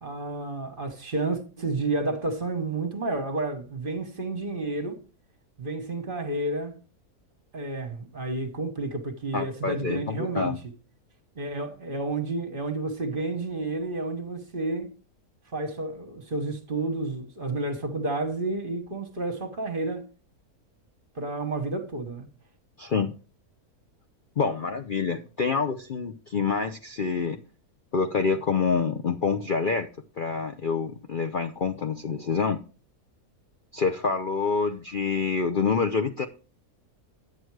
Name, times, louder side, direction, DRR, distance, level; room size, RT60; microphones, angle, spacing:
voice 1, 0.0-5.0 5.6-6.8 7.5-10.5 11.4-14.9 15.5-20.1 21.1-22.3, right 2 dB, 35° right, 1.3 m, -30 dB
voice 2, 9.3-10.6 22.8-23.1 24.4-27.4 27.9-29.9 30.2-32.6 33.7-36.3, left 5 dB, 50° left, 0.7 m, -27 dB
9.7 x 7.9 x 4.7 m
omnidirectional pair, 1.6 m